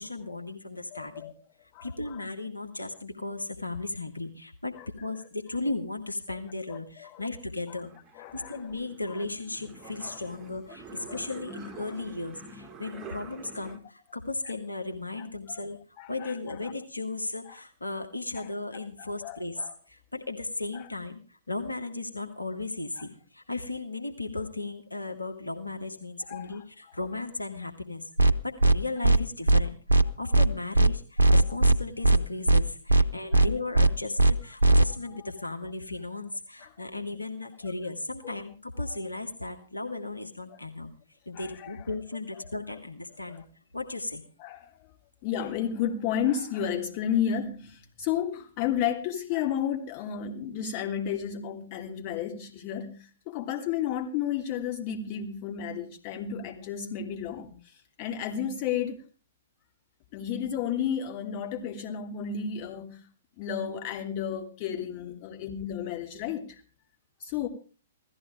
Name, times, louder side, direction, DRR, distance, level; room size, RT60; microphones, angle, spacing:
voice 1, 0.0-1.3 1.8-15.8 16.1-40.9 41.3-43.4 43.7-44.2, left 2 dB, 80° left, 4 dB, 2.1 m, -36 dB
voice 2, 0.9-1.3 1.7-2.2 4.7-4.8 6.3-6.4 6.7-7.2 7.7-7.8 8.2-8.6 10.0-10.2 10.9-11.2 15.2-15.6 16.0-16.5 17.5-17.6 18.3-18.5 19.0-19.7 20.7-20.8 23.0-23.1 26.3-26.6 31.3-31.4 33.3-33.5 36.6-36.7 38.2-38.4 40.5-40.6 41.3-41.9 43.3-43.4 44.4-44.9 45.2-57.5 58.0-59.0 60.1-63.0 63.4-66.5 67.2-67.5, left 9 dB, 35° left, 4 dB, 3.1 m, -32 dB
sound 1, 7.3-13.8, right 3 dB, 15° right, 2.3 m, -46 dB
sound 2, 28.2-28.3 28.6-28.8 29.0-29.2 29.5-29.6 29.9-30.0 30.3-30.5 30.7-30.9 31.2-31.8 32.0-32.2 32.5-32.6 32.9-33.0 33.3-33.5 33.7-33.9 34.2-34.3 34.6-34.8, right 2 dB, 80° right, 0.8 m, -18 dB
17.0 x 14.0 x 5.0 m, 0.37 s
figure-of-eight pair, 115°, 0 cm